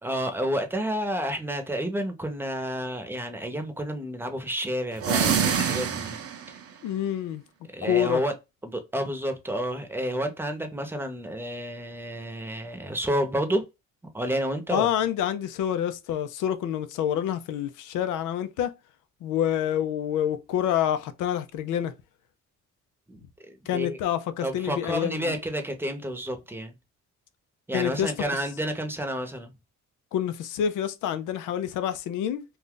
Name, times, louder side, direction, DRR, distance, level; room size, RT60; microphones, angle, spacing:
voice 1, 0.0-6.2 6.5-6.6 7.7-8.3 8.6-13.7 14.1-14.9 23.1-24.0 24.4-26.7 27.7-29.5, equal, 5° right, 0.8 m, -30 dB
sound 1, 4.9-6.6, right 7 dB, 50° right, 0.7 m, -25 dB
voice 2, 6.8-7.4 7.8-8.2 14.7-18.7 19.2-21.9 23.7-25.4 27.7-28.1 30.1-32.4, left 10 dB, 85° left, 0.5 m, -27 dB
2.6 x 2.3 x 3.6 m
cardioid pair, 90°, 30 cm